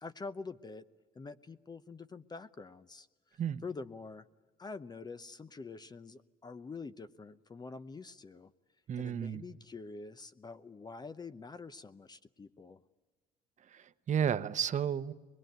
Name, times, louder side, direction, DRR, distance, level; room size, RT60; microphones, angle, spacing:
voice 1, 0.0-0.9 1.1-3.1 3.6-4.2 4.6-8.5 9.0-12.8, left 4 dB, 25° left, 12 dB, 0.8 m, -46 dB
voice 2, 8.9-9.4 13.7-15.1, right 8 dB, 45° right, 13 dB, 1.0 m, -32 dB
24.5 x 21.5 x 9.3 m, 1.3 s
cardioid pair, 110°, 17 cm